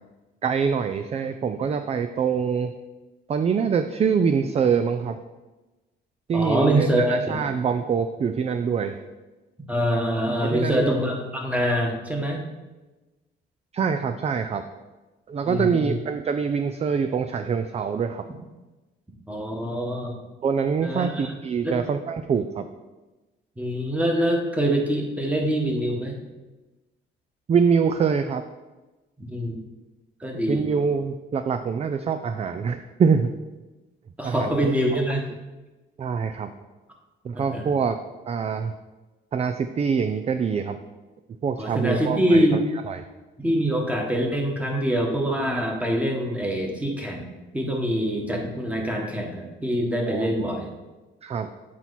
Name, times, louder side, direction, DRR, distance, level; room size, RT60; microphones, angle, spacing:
voice 1, 0.4-2.7 3.3-5.2 6.3-9.0 10.4-10.9 13.7-14.6 15.3-18.2 20.4-22.7 27.5-28.4 30.3-33.3 34.2-35.0 36.0-36.5 37.2-38.0 38.3-38.7 39.3-40.8 41.4-42.5 42.9-43.0 50.1-50.5 51.2-51.5, right 6 dB, 30° right, 9 dB, 0.4 m, -24 dB
voice 2, 6.3-7.4 9.7-12.4 15.4-15.9 19.3-20.1 20.8-21.2 21.6-21.8 23.6-26.2 29.3-29.6 30.2-30.7 34.2-35.2 37.3-37.7 41.6-42.7 43.4-47.2 47.5-50.7, equal, 5° right, 1 dB, 1.5 m, -24 dB
7.5 x 4.6 x 4.1 m, 1.1 s
cardioid pair, 90°, 20 cm